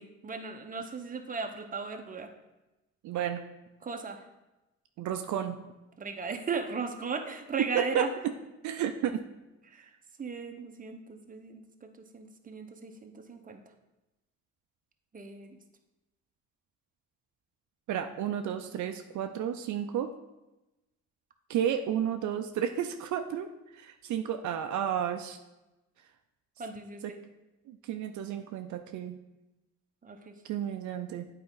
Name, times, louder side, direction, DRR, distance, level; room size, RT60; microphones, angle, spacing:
voice 1, 0.0-2.3 3.8-4.3 6.0-8.1 9.7-9.9 10.2-13.6 15.1-15.6 26.6-27.2 30.0-30.3, right 4 dB, 25° right, 4 dB, 0.9 m, -37 dB
voice 2, 3.0-3.4 5.0-5.6 7.7-8.0 8.6-9.2 17.9-20.1 21.5-23.5 23.7-25.4 27.7-29.2 30.4-31.3, right 9 dB, 70° right, 7 dB, 0.5 m, -32 dB
8.6 x 4.5 x 3.8 m, 1.0 s
cardioid pair, 90°, 30 cm